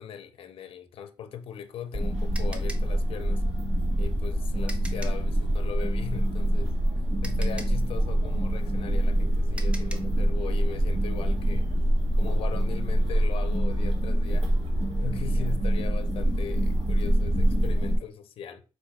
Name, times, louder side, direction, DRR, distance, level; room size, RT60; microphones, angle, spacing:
voice 1, 0.0-3.4 4.0-6.7 7.2-11.7 12.1-14.5 15.0-18.6, left 8 dB, 85° left, 0.5 m, -39 dB
sound 1, 1.4-5.3 6.7-6.8 7.2-10.2, right 1 dB, 15° right, 0.6 m, -44 dB
sound 2, 1.9-18.0, right 1 dB, 80° right, 1.6 m, -25 dB
4.2 x 2.5 x 4.8 m
wide cardioid pair, 145°, 9 cm